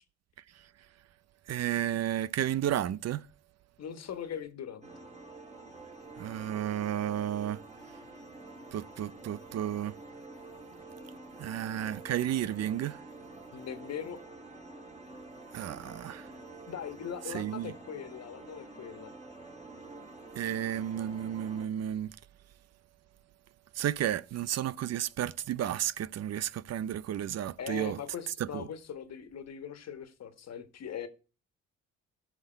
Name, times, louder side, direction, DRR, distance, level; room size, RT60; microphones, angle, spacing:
voice 1, 1.5-3.3 6.2-7.6 8.7-9.9 11.4-13.0 15.5-16.3 17.3-17.7 20.4-22.1 23.7-28.0 28.4-28.6, right 11 dB, 55° right, 0.6 m, -32 dB
voice 2, 3.8-4.9 13.5-14.2 16.7-19.1 27.6-31.1, left 8 dB, 60° left, 1.6 m, -40 dB
sound 1, 4.8-21.7, right 3 dB, 20° right, 3.4 m, -48 dB
16.0 x 5.9 x 4.5 m
cardioid pair, 90°, 30 cm